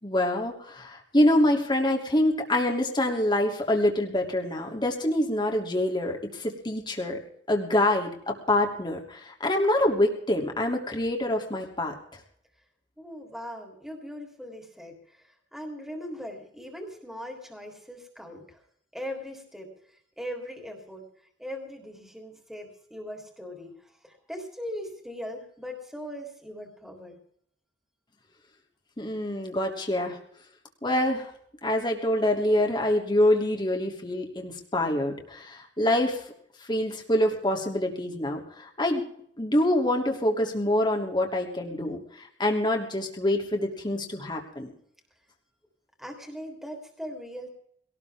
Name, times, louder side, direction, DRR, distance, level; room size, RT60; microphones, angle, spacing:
voice 1, 0.0-7.2 7.5-11.9 29.0-30.2 30.8-31.3 31.6-36.2 36.7-39.0 39.4-44.7, left 1 dB, 25° left, 2 dB, 3.0 m, -26 dB
voice 2, 13.0-18.6 18.9-19.7 20.2-21.0 21.4-23.7 24.0-27.2 46.0-47.5, equal, ahead, 2 dB, 3.5 m, -39 dB
21.5 x 18.5 x 3.6 m, 0.67 s
head